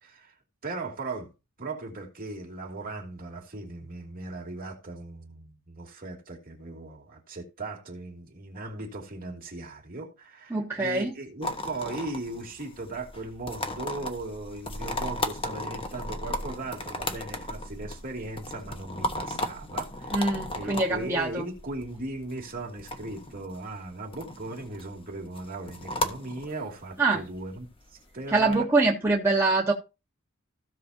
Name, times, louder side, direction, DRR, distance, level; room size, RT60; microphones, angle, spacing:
voice 1, 0.0-0.3 0.6-1.3 1.6-20.2 20.5-27.7 28.1-28.7, right 2 dB, 45° right, 2.7 m, -38 dB
voice 2, 10.5-11.1 20.1-21.4 27.0-27.2 28.3-29.7, right 3 dB, 15° right, 1.4 m, -24 dB
sound 1, 11.4-28.6, left 1 dB, 25° left, 1.3 m, -36 dB
16.0 x 6.3 x 2.8 m
head